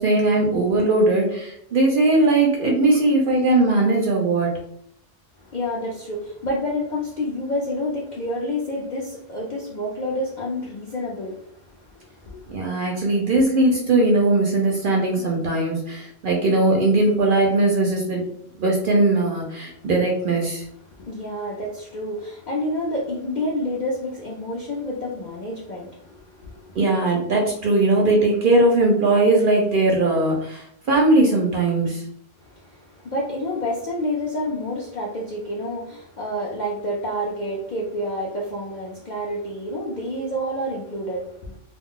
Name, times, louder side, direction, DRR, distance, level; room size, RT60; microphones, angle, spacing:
voice 1, 0.0-4.5 12.5-18.2 18.6-20.7 26.7-32.0, right 2 dB, 60° right, -1 dB, 0.6 m, -19 dB
voice 2, 5.4-12.6 20.9-26.8 32.4-41.6, left 1 dB, 60° left, -4 dB, 0.4 m, -29 dB
2.3 x 2.0 x 3.6 m, 0.70 s
omnidirectional pair, 1.3 m